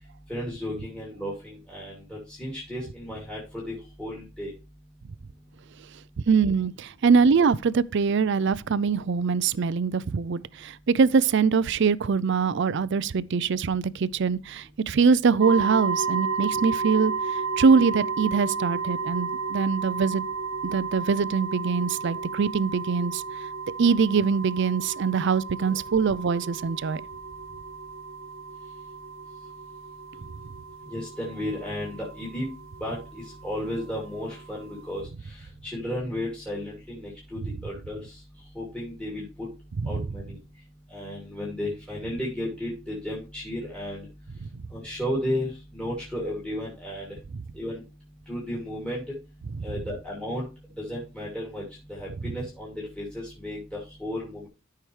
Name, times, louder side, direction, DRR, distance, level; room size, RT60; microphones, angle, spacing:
voice 1, 0.3-3.4 3.7-4.5 25.7-25.8 30.9-32.5 32.8-35.1 35.6-38.0 38.5-39.5 39.9-40.4 40.9-44.1 44.7-45.5 45.7-47.1 47.6-47.8 48.3-49.0 49.6-50.5 50.8-51.6 51.9-54.5, left 1 dB, 5° left, 2.6 m, -33 dB
voice 2, 6.3-20.3 20.6-23.2 23.8-27.0 39.8-40.0 44.4-44.5 49.6-49.7, right 5 dB, 60° right, 0.4 m, -23 dB
sound 1, 15.4-35.0, right 5 dB, 85° right, 1.0 m, -33 dB
13.5 x 5.7 x 3.3 m
head